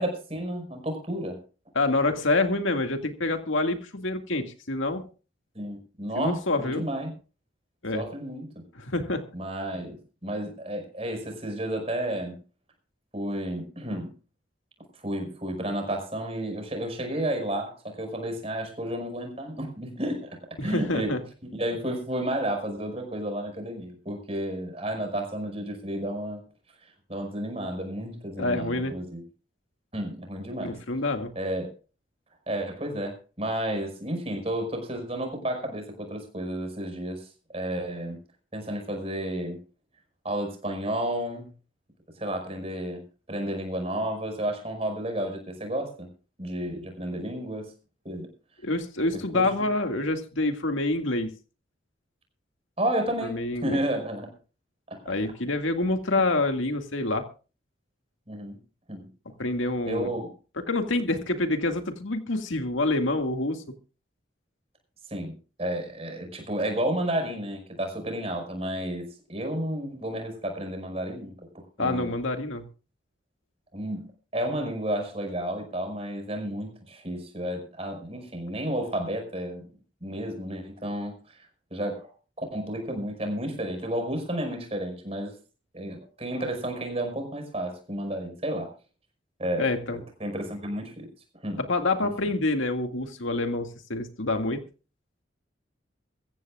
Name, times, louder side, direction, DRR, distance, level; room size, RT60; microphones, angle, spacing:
voice 1, 0.0-1.4 5.5-7.1 7.9-8.5 9.3-12.3 13.1-14.1 15.0-21.2 21.4-26.4 27.1-29.2 29.9-30.8 31.4-31.7 32.5-37.3 37.5-38.2 38.5-39.6 40.2-41.5 42.2-43.0 43.3-46.1 46.4-47.7 48.0-48.3 49.1-49.5 52.8-54.3 54.9-55.1 58.3-58.6 58.9-59.1 59.9-60.3 65.1-72.1 73.7-74.1 74.3-79.6 80.0-81.4 81.7-82.1 82.4-85.3 85.7-88.7 89.4-91.1 91.4-91.6 92.0-92.1, right 1 dB, 30° right, 5.5 m, -32 dB
voice 2, 1.8-5.1 6.2-6.9 7.8-8.0 8.8-9.2 20.6-21.2 28.4-29.0 30.6-31.3 48.6-51.3 53.2-53.8 55.1-57.3 59.4-60.1 60.7-63.6 71.8-72.6 89.6-90.0 91.5-94.6, left 2 dB, 90° left, 2.1 m, -27 dB
23.0 x 15.0 x 2.4 m
head